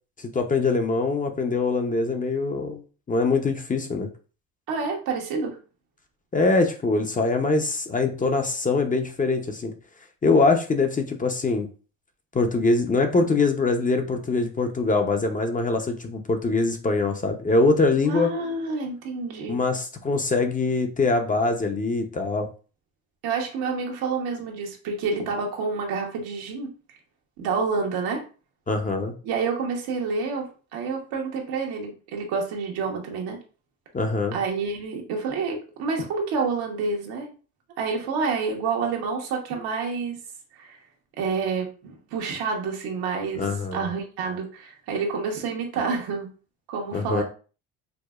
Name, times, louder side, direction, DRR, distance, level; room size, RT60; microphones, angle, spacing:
voice 1, 0.2-2.8 3.1-4.1 6.3-9.7 10.2-11.7 12.3-18.3 19.5-22.5 28.7-29.1 33.9-34.4 43.4-43.9 46.9-47.2, left 3 dB, 20° left, 5 dB, 0.6 m, -23 dB
voice 2, 4.7-5.6 18.1-19.6 23.2-26.7 27.4-28.2 29.2-30.5 30.7-33.4 34.3-37.3 37.8-40.2 40.5-40.8 41.2-46.3 46.7-47.2, right 4 dB, 80° right, 1 dB, 1.1 m, -28 dB
4.8 x 2.0 x 2.3 m, 0.37 s
supercardioid pair, 85°, 37 cm